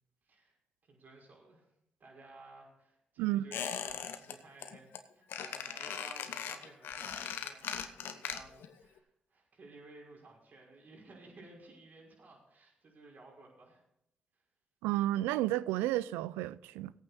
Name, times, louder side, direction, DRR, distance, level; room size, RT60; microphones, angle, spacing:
voice 1, 0.8-1.7 2.0-13.8 14.3-14.4, right 2 dB, 55° right, 5.6 m, -56 dB
Squeak, 3.5-4.3 4.6-5.0 5.3-8.7 9.0-9.1, left 8 dB, 75° left, 1.0 m, -39 dB
voice 2, 14.8-16.9, right 15 dB, 90° right, 0.4 m, -31 dB
17.5 x 8.9 x 4.2 m
supercardioid pair, 50°, 4 cm